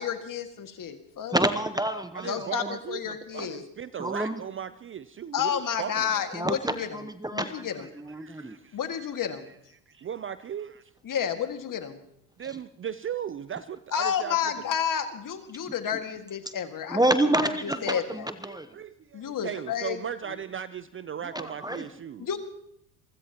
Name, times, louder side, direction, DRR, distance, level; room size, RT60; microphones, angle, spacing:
voice 1, 0.0-1.4 2.2-3.6 5.3-6.9 7.3-7.9 8.7-9.5 11.0-12.0 13.9-17.0 17.6-18.3 19.1-20.0 22.2-22.4, left 8 dB, 40° left, 7 dB, 2.0 m, -30 dB
voice 2, 1.3-2.7 4.0-4.4 6.3-7.7 8.0-8.6 16.9-18.7 21.3-21.8, right 1 dB, 10° right, 10 dB, 1.0 m, -28 dB
voice 3, 2.1-6.3 7.7-8.8 9.9-10.9 12.4-14.5 18.5-22.3, right 8 dB, 25° right, 14 dB, 0.6 m, -37 dB
28.0 x 15.5 x 3.0 m, 0.73 s
hypercardioid pair, 80°, 47 cm